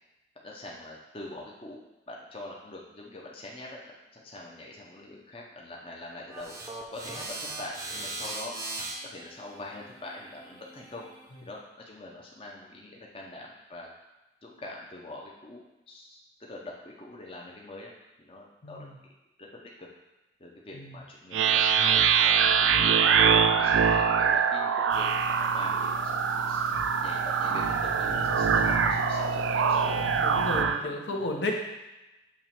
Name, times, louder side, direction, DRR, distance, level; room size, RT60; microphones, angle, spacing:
voice 1, 0.4-1.8 2.1-3.8 4.1-6.5 6.9-8.6 9.0-11.1 11.4-13.9 14.4-17.9 18.2-18.9 19.4-19.9 20.4-21.6 22.2-25.1 25.4-26.6 27.0-30.0 30.7-31.2, left 2 dB, 30° left, -2 dB, 0.7 m, -44 dB
sound 1, 6.3-11.5, right 2 dB, 15° right, 0.6 m, -40 dB
voice 2, 18.6-19.0 20.7-21.0 30.2-31.5, left 2 dB, 70° left, 0 dB, 0.9 m, -33 dB
sound 2, 21.3-30.8, right 7 dB, 80° right, 0.3 m, -24 dB
sound 3, 24.9-30.7, left 4 dB, 90° left, 0.3 m, -39 dB
7.2 x 3.0 x 4.3 m, 1.0 s
head